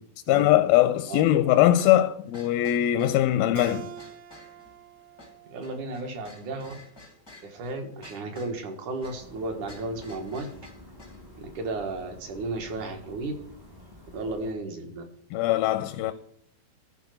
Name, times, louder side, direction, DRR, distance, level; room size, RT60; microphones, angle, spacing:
voice 1, 0.3-3.9 15.3-16.1, left 13 dB, 85° left, 2.3 m, -21 dB
sound 1, 1.8-11.2, left 2 dB, 40° left, 0.3 m, -51 dB
Keyboard (musical), 3.6-6.8, right 10 dB, 75° right, 2.3 m, -45 dB
voice 2, 5.5-6.7 7.4-10.5 11.4-13.3 14.1-15.0, right 2 dB, 60° right, 2.9 m, -34 dB
sound 2, 9.0-14.5, left 1 dB, 15° right, 0.7 m, -49 dB
14.5 x 4.9 x 6.5 m
omnidirectional pair, 4.3 m